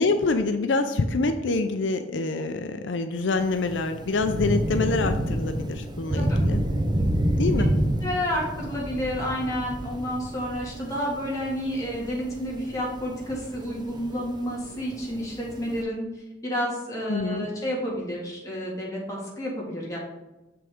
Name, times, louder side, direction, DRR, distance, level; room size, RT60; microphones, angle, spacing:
voice 1, 0.0-6.6 7.4-7.7 17.1-17.5, left 3 dB, 80° left, 8 dB, 0.5 m, -26 dB
Thunder / Rain, 3.4-15.8, right 1 dB, 25° right, 0.6 m, -29 dB
voice 2, 8.0-16.0 16.4-20.0, equal, 20° left, -5 dB, 2.1 m, -30 dB
7.3 x 5.8 x 3.6 m, 1.0 s
head